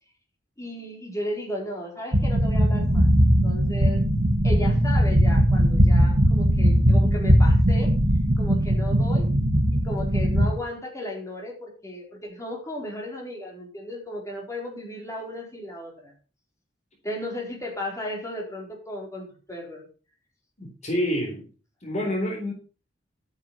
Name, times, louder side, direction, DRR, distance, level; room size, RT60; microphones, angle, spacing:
voice 1, 0.6-3.1 3.4-4.0 4.4-7.9 8.4-9.3 9.7-16.1 17.0-19.9, left 1 dB, 20° left, -1 dB, 4.4 m, -35 dB
sound 1, 2.1-10.5, equal, 60° right, 2.7 m, -19 dB
voice 2, 20.6-21.5 21.8-22.5, equal, 40° left, 2 dB, 3.9 m, -27 dB
12.5 x 9.4 x 5.7 m, 0.38 s
head